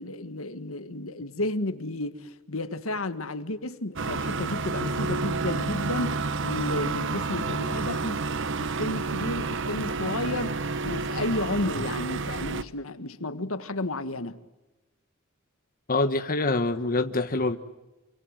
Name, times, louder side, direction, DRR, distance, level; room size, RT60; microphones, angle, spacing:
voice 1, 0.0-8.2 8.6-14.4, left 2 dB, 75° left, 1.7 m, -32 dB
sound 1, 4.0-12.6, right 3 dB, 60° right, 1.2 m, -30 dB
voice 2, 15.9-17.6, left 2 dB, 45° left, 1.4 m, -25 dB
28.5 x 25.5 x 8.0 m
head